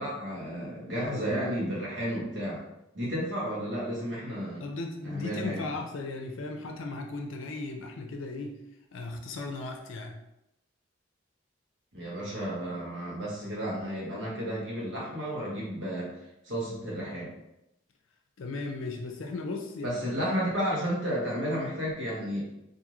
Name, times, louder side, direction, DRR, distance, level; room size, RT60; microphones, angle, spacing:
voice 1, 0.0-2.6 2.9-4.6 5.0-5.7 11.9-16.1 16.4-17.3 19.8-22.5, equal, 65° right, -5 dB, 1.1 m, -32 dB
voice 2, 4.6-8.6 8.9-10.2 18.4-20.2, left 3 dB, 80° left, 3 dB, 0.5 m, -36 dB
2.6 x 2.5 x 3.0 m, 0.86 s
head